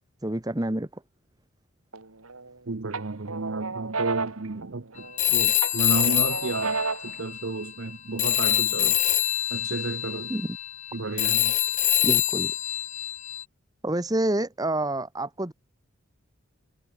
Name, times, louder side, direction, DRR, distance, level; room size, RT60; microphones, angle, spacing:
voice 1, 0.2-1.0 10.3-10.6 12.0-12.5 13.8-15.5, right 1 dB, 15° right, 1.2 m, -28 dB
sound 1, 1.9-2.5 2.9-5.2 5.6-7.2, right 4 dB, 80° right, 2.9 m, -32 dB
voice 2, 2.7-9.0 9.5-10.3 10.9-11.5, right 3 dB, 60° right, 0.8 m, -32 dB
Telephone, 5.2-7.9 8.2-13.4, left 12 dB, 35° left, 0.7 m, -25 dB
head